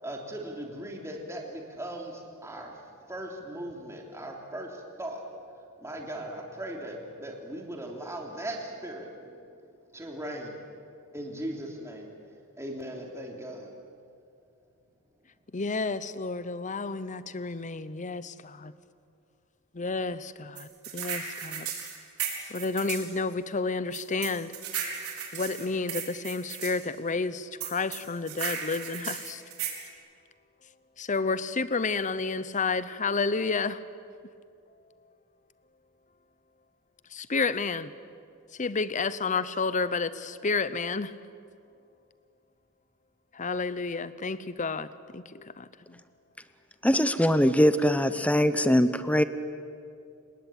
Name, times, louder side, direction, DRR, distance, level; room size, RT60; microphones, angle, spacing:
voice 1, 0.0-5.2 5.8-9.4 9.9-10.6 11.1-12.1 12.6-13.7, right 1 dB, 15° right, 0 dB, 3.2 m, -38 dB
voice 2, 15.5-18.7 19.7-21.7 22.4-24.5 25.3-29.4 31.0-33.8 37.1-37.9 38.6-41.1 43.3-44.9 45.1-46.0, left 4 dB, 35° left, 15 dB, 0.8 m, -30 dB
sound 1, 20.6-23.1 23.9-26.7 27.6-29.8, right 8 dB, 80° right, 4.8 m, -35 dB
voice 3, 46.8-49.2, equal, 5° left, 11 dB, 1.0 m, -22 dB
29.5 x 19.0 x 8.7 m, 2.4 s
head